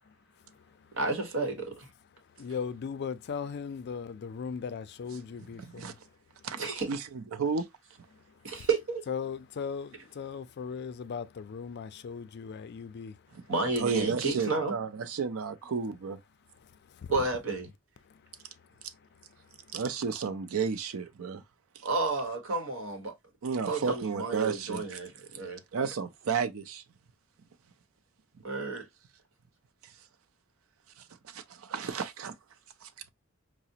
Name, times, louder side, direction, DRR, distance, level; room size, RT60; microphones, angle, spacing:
voice 1, 0.9-1.9 6.5-6.9 8.4-9.0 13.5-14.7 17.1-17.7 21.8-23.1 23.6-25.6 28.4-28.8, right 3 dB, 65° right, 1.1 m, -31 dB
voice 2, 2.4-5.9 9.1-13.2, left 6 dB, 50° left, 0.4 m, -37 dB
voice 3, 5.5-5.9 6.4-6.6 6.9-7.7 13.8-16.2 19.7-21.4 21.8-21.9 23.4-25.0 25.7-26.8 31.0-32.3 32.8-32.9, right 5 dB, 85° right, 0.5 m, -32 dB
4.8 x 2.0 x 2.7 m
head